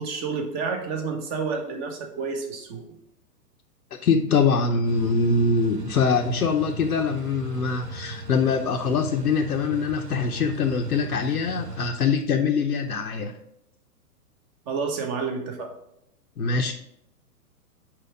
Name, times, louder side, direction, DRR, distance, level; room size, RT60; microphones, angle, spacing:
voice 1, 0.0-2.8 14.7-15.7, right 5 dB, 30° right, 3 dB, 1.4 m, -29 dB
voice 2, 4.0-13.3 16.4-16.7, left 5 dB, 75° left, 2 dB, 0.8 m, -23 dB
sound 1, 4.8-11.9, right 3 dB, 85° right, 1.1 m, -38 dB
6.0 x 4.8 x 4.9 m, 0.79 s
figure-of-eight pair, 115°, 47 cm